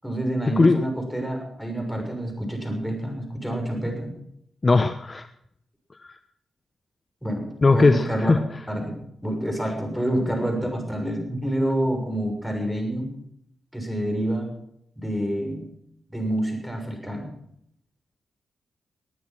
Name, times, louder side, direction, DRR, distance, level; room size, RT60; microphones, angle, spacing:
voice 1, 0.0-4.1 7.2-8.3 8.7-9.0 9.2-13.1 13.7-14.5 15.0-15.6 16.1-17.3, right 1 dB, ahead, 2 dB, 6.6 m, -28 dB
voice 2, 4.6-5.3 7.6-8.4, left 3 dB, 35° left, 9 dB, 0.9 m, -18 dB
19.5 x 9.5 x 6.1 m, 0.72 s
cardioid pair, 55°, 0 cm